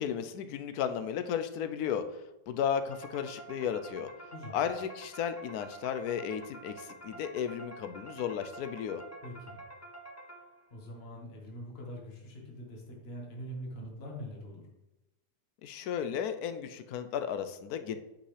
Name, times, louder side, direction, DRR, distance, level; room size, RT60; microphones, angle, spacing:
voice 1, 0.0-2.0 2.5-4.1 4.5-9.0 15.6-18.0, left 8 dB, 75° left, 10 dB, 1.1 m, -34 dB
sound 1, 2.9-10.8, right 2 dB, 20° left, 0.4 m, -48 dB
voice 2, 9.2-9.5 10.7-14.6, equal, 40° left, -1 dB, 1.6 m, -43 dB
8.7 x 5.5 x 3.3 m, 0.97 s
omnidirectional pair, 1.7 m